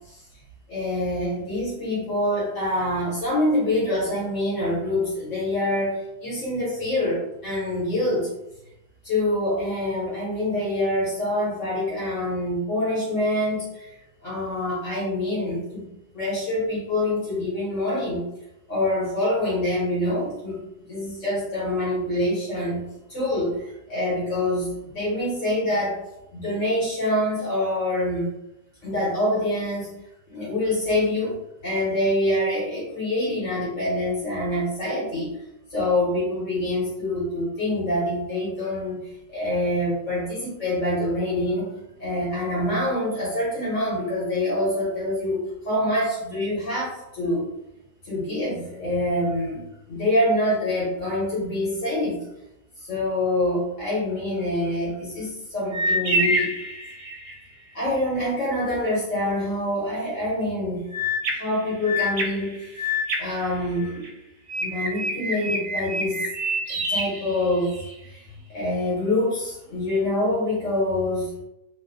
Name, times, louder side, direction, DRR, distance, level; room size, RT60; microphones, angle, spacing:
voice 1, 0.7-8.3 9.0-13.9 14.2-15.9 16.1-18.2 18.7-26.0 26.3-28.3 28.8-29.9 30.3-31.4 31.6-35.4 35.7-41.7 42.0-47.5 48.0-52.2 52.8-56.5 57.7-60.9 61.3-62.9 63.2-64.1 64.6-66.3 66.7-68.2 68.5-71.3, left 1 dB, 55° left, -7 dB, 1.1 m, -26 dB
sound 1, 55.7-57.4 60.9-64.1 64.5-67.9, equal, 70° right, 0.9 m, -27 dB
2.7 x 2.0 x 2.5 m, 0.89 s
omnidirectional pair, 1.7 m